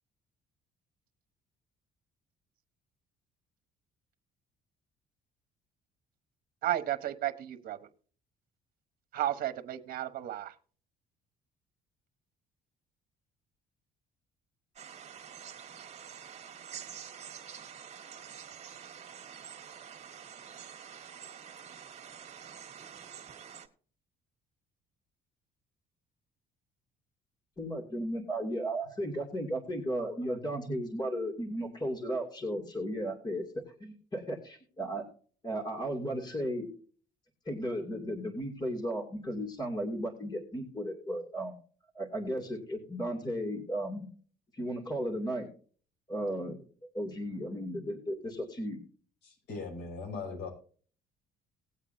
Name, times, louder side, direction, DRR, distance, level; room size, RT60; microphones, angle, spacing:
voice 1, 6.6-7.8 9.1-10.5, right 13 dB, 60° right, 9 dB, 1.2 m, -33 dB
sound 1, 14.8-23.7, right 8 dB, 40° right, 1.8 m, -47 dB
voice 2, 27.6-33.4 33.8-35.0 35.4-36.7 37.5-41.5 41.9-44.1 44.5-45.5 46.1-46.6 46.9-48.8, equal, 25° left, 2 dB, 2.6 m, -35 dB
voice 3, 49.2-50.5, left 4 dB, 75° left, 2 dB, 6.0 m, -39 dB
19.0 x 8.4 x 2.7 m, 0.43 s
cardioid pair, 110°, 17 cm